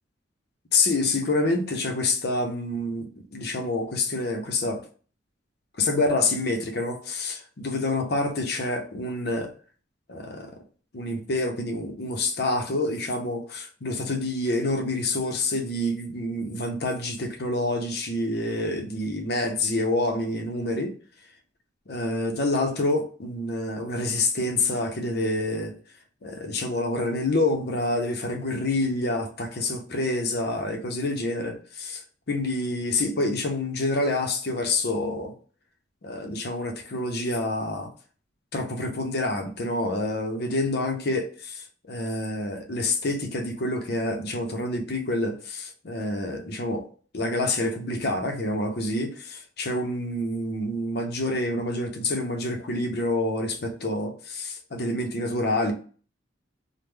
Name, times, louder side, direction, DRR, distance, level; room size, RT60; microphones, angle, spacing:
voice 1, 0.7-4.9 5.8-9.5 10.1-10.5 10.9-21.0 21.9-25.7 26.2-32.0 32.3-35.3 36.0-37.9 38.5-46.9 47.1-55.7, left 2 dB, 60° left, 0.7 m, -27 dB
3.4 x 2.1 x 3.2 m
head